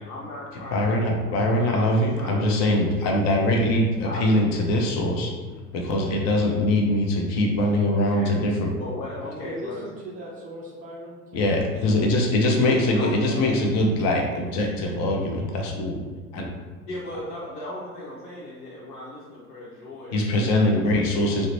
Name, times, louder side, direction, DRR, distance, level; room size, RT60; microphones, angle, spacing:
voice 1, 0.0-1.0 1.5-2.5 4.0-4.4 7.9-8.4 8.8-9.9 12.5-13.1 16.9-21.2, left 1 dB, 70° left, -7 dB, 0.9 m, -37 dB
voice 2, 0.7-5.3 5.7-8.7 11.3-16.0 16.3-16.5 20.1-21.5, left 1 dB, 35° left, 1 dB, 0.6 m, -22 dB
voice 3, 9.2-11.9 12.7-14.1, right 1 dB, 20° right, -3 dB, 0.4 m, -39 dB
3.7 x 2.1 x 3.0 m, 1.4 s
figure-of-eight pair, 80°, 46 cm